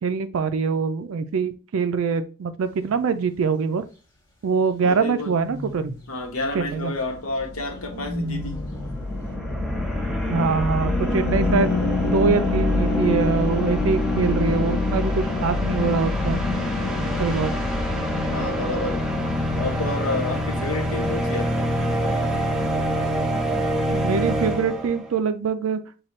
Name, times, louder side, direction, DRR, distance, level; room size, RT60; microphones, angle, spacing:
voice 1, 0.0-3.8 4.4-5.9 6.5-6.9 10.3-11.7 12.0-16.4 17.2-17.5 23.9-25.8, right 5 dB, 75° right, 10 dB, 0.4 m, -24 dB
sound 1, 2.6-3.5 4.8-6.1 7.5-9.1, left 1 dB, 25° left, 1.3 m, -36 dB
voice 2, 4.8-5.3 6.1-8.6 18.3-19.0 19.5-21.7 22.0-22.3, left 2 dB, 75° left, 4 dB, 1.0 m, -30 dB
sound 2, 6.4-20.9, left 3 dB, 55° left, 0.5 m, -28 dB
sound 3, 7.7-25.1, equal, 5° right, 0.8 m, -27 dB
5.7 x 2.3 x 3.1 m, 0.35 s
head